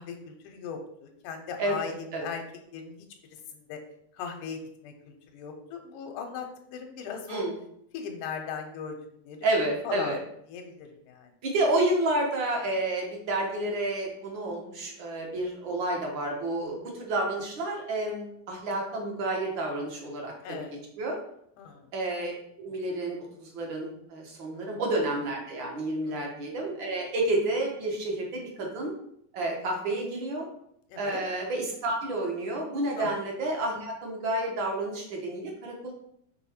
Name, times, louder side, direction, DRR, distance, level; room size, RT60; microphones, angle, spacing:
voice 1, 0.0-2.4 2.7-3.1 3.3-3.8 4.1-7.4 7.9-9.0 9.2-9.5 9.8-10.2 10.5-11.3 20.4-20.7 21.6-21.9 24.5-24.8 26.1-26.4 30.9-31.2 33.0-33.1, left 6 dB, 80° left, 4 dB, 2.2 m, -39 dB
voice 2, 1.6-2.3 7.3-7.5 9.4-10.2 11.4-20.6 21.0-21.2 21.9-22.3 22.6-28.9 29.3-30.5 31.0-35.9, right 2 dB, 55° right, 0 dB, 1.3 m, -30 dB
6.0 x 4.0 x 4.4 m, 0.71 s
omnidirectional pair, 3.6 m